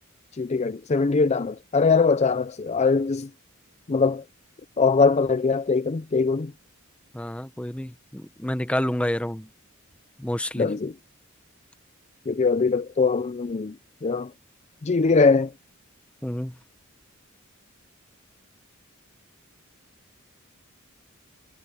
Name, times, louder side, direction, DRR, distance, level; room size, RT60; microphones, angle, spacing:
voice 1, 0.4-3.3 3.9-4.2 4.8-6.5 10.5-10.9 12.3-13.8 14.0-14.3 14.8-15.5, left 4 dB, 30° left, 0.5 m, -22 dB
voice 2, 7.1-9.5 10.2-10.7 16.2-16.5, left 1 dB, 5° left, 0.9 m, -29 dB
head